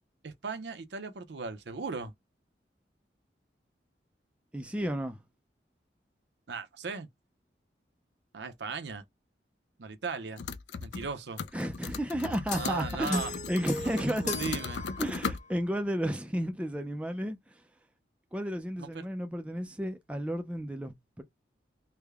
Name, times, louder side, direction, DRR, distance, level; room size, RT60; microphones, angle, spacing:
voice 1, 0.2-2.1 6.5-7.1 8.3-9.0 9.8-10.4 10.8-11.4 12.5-13.3 13.8-14.8 18.8-19.1, right 4 dB, 75° right, 0.7 m, -37 dB
voice 2, 4.5-5.2 11.5-14.4 15.0-17.6 18.3-21.2, equal, 5° right, 0.4 m, -32 dB
sound 1, 10.4-11.1 11.4-15.4, left 5 dB, 80° left, 0.4 m, -37 dB
sound 2, 12.5-15.5, left 3 dB, 40° left, 1.1 m, -39 dB
3.4 x 2.1 x 3.4 m
head